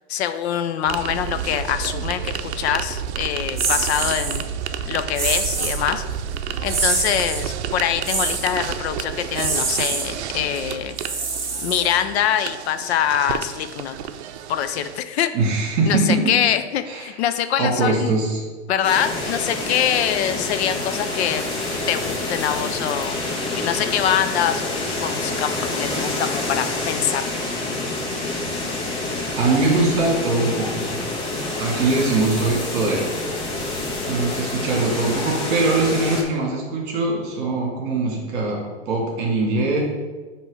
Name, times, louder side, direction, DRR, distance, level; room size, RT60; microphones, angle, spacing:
voice 1, 0.1-4.4 4.9-6.0 6.6-11.0 11.6-14.0 14.5-15.3 15.9-18.2 18.7-21.4 21.9-23.2 23.5-27.5, left 10 dB, 70° left, 10 dB, 0.5 m, -24 dB
sound 1, 0.9-15.0, right 8 dB, 70° right, 0.6 m, -31 dB
sound 2, 3.6-4.4 5.1-5.8 6.7-7.4 8.0-8.5 9.3-10.1 11.0-12.1, right 3 dB, 10° right, 0.6 m, -25 dB
voice 2, 15.3-16.4 16.9-17.1 17.6-18.4 28.8-31.0 31.6-33.1 34.1-38.6 38.9-39.8, right 3 dB, 30° right, -2 dB, 1.9 m, -22 dB
sound 3, 18.8-36.2, left 2 dB, 40° left, 1.4 m, -27 dB
8.1 x 3.0 x 4.8 m, 1.4 s
supercardioid pair, 165°, 34 cm